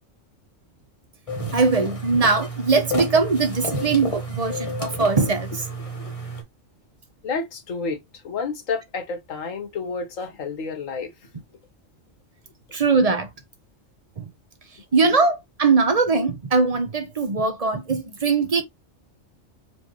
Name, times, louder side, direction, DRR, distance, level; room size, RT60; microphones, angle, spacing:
sound 1, 1.3-6.4, equal, 30° left, 1.2 m, -31 dB
voice 1, 1.4-5.5 12.7-13.3 14.2-14.3 14.9-18.6, right 4 dB, 35° right, 0.8 m, -21 dB
voice 2, 5.8-6.2 7.2-11.1, left 4 dB, 85° left, 1.5 m, -30 dB
4.5 x 3.2 x 3.0 m
omnidirectional pair, 1.3 m